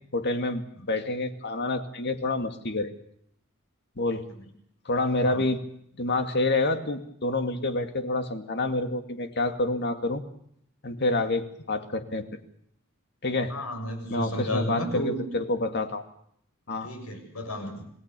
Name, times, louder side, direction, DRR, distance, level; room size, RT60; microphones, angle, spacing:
voice 1, 0.1-2.9 4.0-4.2 4.9-5.6 6.0-10.2 10.8-12.2 13.2-13.5 14.1-16.0 16.7-16.9, left 2 dB, 55° left, 7 dB, 2.3 m, -28 dB
voice 2, 13.5-15.2 16.8-17.8, equal, 85° left, 4 dB, 7.2 m, -32 dB
27.5 x 19.0 x 6.9 m, 0.69 s
head